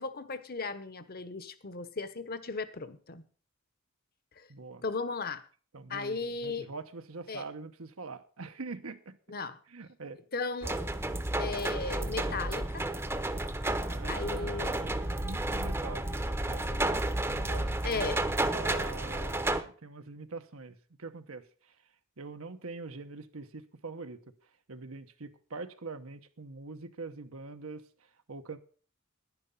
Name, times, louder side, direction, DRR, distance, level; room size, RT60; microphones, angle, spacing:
voice 1, 0.0-3.2 4.4-4.5 4.8-5.4 5.9-6.7 7.3-7.4 9.3-9.6 10.3-10.8 11.4-12.8 14.1-14.7 17.8-18.2, left 4 dB, 45° left, 1.0 m, -36 dB
voice 2, 4.5-4.8 5.7-9.4 9.7-10.2 13.7-21.8 22.2-24.2 24.7-28.6, right 3 dB, 80° right, 1.1 m, -44 dB
sound 1, 10.6-19.6, right 1 dB, 10° right, 0.8 m, -32 dB
10.5 x 10.5 x 5.6 m
head